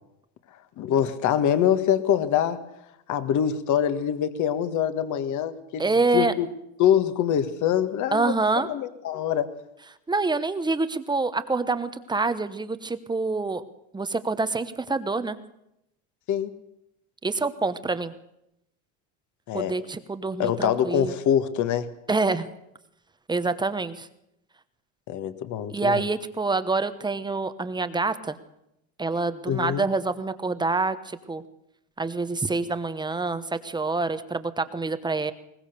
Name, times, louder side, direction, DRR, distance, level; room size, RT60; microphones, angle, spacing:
voice 1, 0.8-2.6 3.1-5.9 6.1-6.5 6.8-8.4 8.6-9.5 16.3-16.5 19.5-19.8 20.4-21.9 25.1-26.0 29.5-29.9, left 9 dB, 45° left, 11 dB, 1.7 m, -24 dB
voice 2, 5.8-6.3 8.1-8.7 10.1-13.6 13.9-15.4 17.2-18.1 19.5-21.1 22.1-22.5 23.3-24.1 25.7-28.4 29.0-31.4 32.0-35.3, right 3 dB, 10° right, 11 dB, 0.9 m, -26 dB
21.5 x 19.5 x 6.7 m, 0.83 s
supercardioid pair, 135°, 42 cm